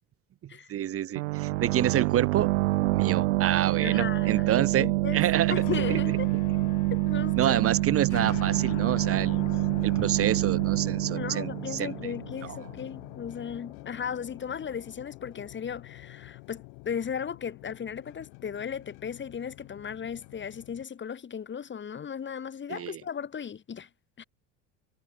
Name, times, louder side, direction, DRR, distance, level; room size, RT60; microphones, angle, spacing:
voice 1, 0.4-2.5 2.9-5.6 5.9-6.0 7.4-9.4 9.8-11.9 22.7-23.0, right 11 dB, 35° right, 1.4 m, -28 dB
sound 1, 1.2-12.6, right 20 dB, 75° right, 1.0 m, -27 dB
voice 2, 3.8-5.2 5.5-6.3 6.9-7.6 11.1-23.9 24.2-24.3, left 7 dB, 30° left, 3.0 m, -36 dB
sound 2, 5.3-20.8, left 40 dB or more, 65° left, 2.9 m, -43 dB
hypercardioid pair, 80°, 38 cm